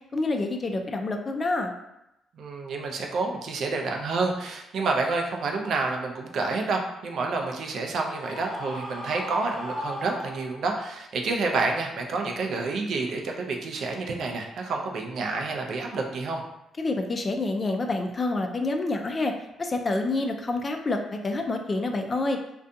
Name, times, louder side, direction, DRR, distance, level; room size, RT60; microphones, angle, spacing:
voice 1, 0.1-1.7 16.8-22.4, left 2 dB, 35° left, 4 dB, 0.3 m, -28 dB
voice 2, 2.4-16.4, right 3 dB, 65° right, 2 dB, 0.4 m, -29 dB
Screaming, 8.1-10.8, equal, 10° left, 1.0 m, -36 dB
2.5 x 2.2 x 2.5 m, 0.86 s
cardioid pair, 90°, 0 cm